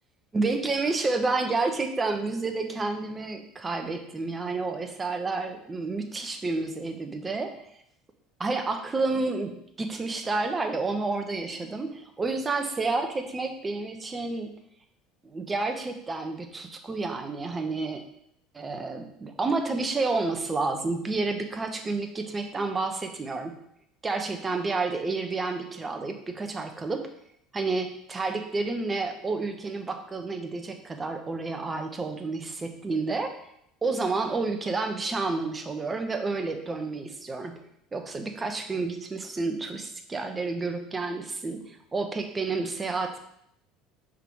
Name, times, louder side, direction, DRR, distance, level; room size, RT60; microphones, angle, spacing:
voice 1, 0.3-7.6 8.4-14.5 15.2-18.1 18.5-23.5 24.0-27.1 27.5-33.5 33.8-37.6 37.9-43.2, right 3 dB, 25° right, 6 dB, 1.0 m, -30 dB
5.7 x 3.7 x 4.7 m, 0.73 s
hypercardioid pair, 85°, 0 cm